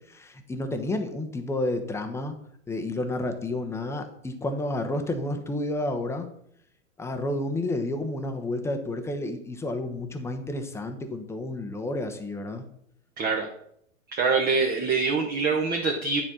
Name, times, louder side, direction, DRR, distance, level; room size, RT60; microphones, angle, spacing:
voice 1, 0.1-2.3 2.7-6.3 7.0-12.6, left 1 dB, 5° left, 6 dB, 0.9 m, -30 dB
voice 2, 13.2-13.5 14.1-16.2, right 4 dB, 25° right, 2 dB, 1.0 m, -24 dB
9.8 x 4.3 x 6.1 m, 0.70 s
hypercardioid pair, 120°, 40 cm